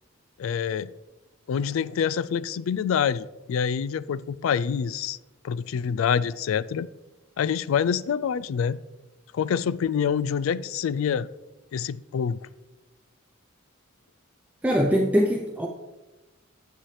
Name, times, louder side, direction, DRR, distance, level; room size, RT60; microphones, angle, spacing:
voice 1, 0.4-0.9 1.5-5.2 5.4-6.9 7.4-8.8 9.3-11.3 11.7-12.4, left 7 dB, 70° left, 0.3 m, -26 dB
voice 2, 14.6-15.7, equal, 5° right, 0.5 m, -22 dB
10.0 x 7.3 x 3.3 m
head